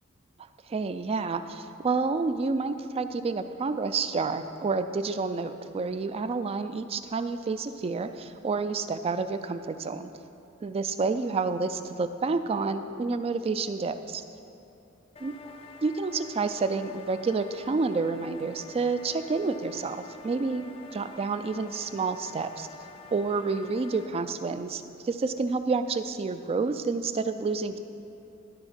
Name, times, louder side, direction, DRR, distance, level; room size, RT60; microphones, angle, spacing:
voice 1, 0.7-10.1 10.6-14.2 15.2-15.3 15.8-20.6 20.9-22.7 23.1-27.8, right 4 dB, 30° right, 10 dB, 0.3 m, -29 dB
sound 1, 15.2-24.1, left 4 dB, 30° left, 0.6 m, -48 dB
12.5 x 4.4 x 5.7 m, 2.7 s
head